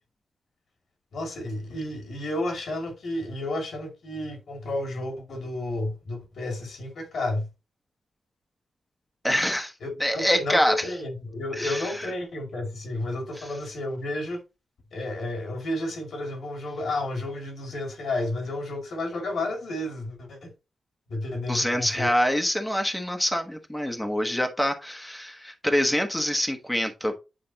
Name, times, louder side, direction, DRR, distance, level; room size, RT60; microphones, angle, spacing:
voice 1, 1.1-7.5 9.8-14.4 14.9-20.5 21.1-22.1, left 1 dB, 70° left, 2.3 m, -31 dB
voice 2, 9.2-9.7 10.0-10.7 11.6-12.0 21.5-27.1, equal, 5° left, 1.0 m, -25 dB
8.9 x 5.0 x 2.8 m
wide cardioid pair, 140°, 0 cm